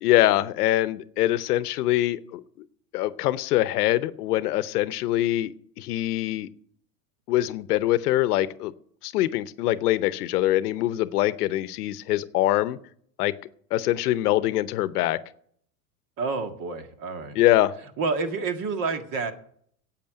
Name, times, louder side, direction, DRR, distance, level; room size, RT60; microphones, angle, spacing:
voice 1, 0.0-2.4 2.9-6.5 7.3-8.7 9.0-12.8 13.2-13.3 13.7-15.2 17.3-17.7, left 15 dB, 75° left, 16 dB, 0.8 m, -23 dB
voice 2, 16.2-17.4 18.0-19.3, right 4 dB, 45° right, 7 dB, 1.9 m, -29 dB
8.7 x 8.4 x 9.1 m, 0.64 s
hypercardioid pair, 105°, 47 cm